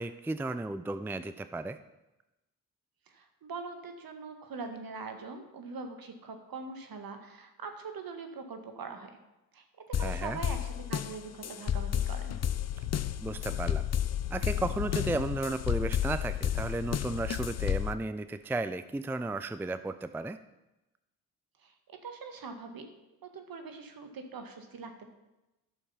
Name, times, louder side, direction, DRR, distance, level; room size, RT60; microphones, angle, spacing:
voice 1, 0.0-1.8 10.0-10.4 13.2-13.8 14.3-20.4, right 2 dB, 5° right, 12 dB, 0.4 m, -34 dB
voice 2, 3.1-9.1 9.5-12.4 21.6-22.9 23.2-25.1, right 4 dB, 60° right, 6 dB, 1.8 m, -42 dB
sound 1, 9.9-17.9, left 9 dB, 40° left, 0.6 m, -32 dB
sound 2, 12.5-17.8, left 13 dB, 85° left, 0.6 m, -37 dB
11.0 x 6.5 x 5.7 m, 0.99 s
supercardioid pair, 50°, 40 cm